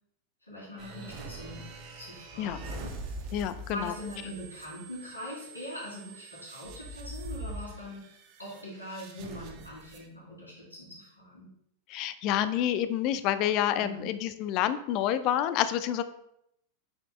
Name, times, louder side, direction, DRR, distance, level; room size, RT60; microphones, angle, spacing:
voice 1, 0.5-1.6 1.9-3.3 3.7-11.5 13.7-14.1, left 1 dB, 80° left, -10 dB, 2.7 m, -42 dB
sound 1, 0.8-10.1, right 2 dB, 40° right, 0.9 m, -43 dB
voice 2, 3.3-3.9 11.9-16.0, left 11 dB, 40° left, 12 dB, 0.5 m, -28 dB
8.0 x 5.9 x 2.3 m, 0.77 s
figure-of-eight pair, 90°, 0 cm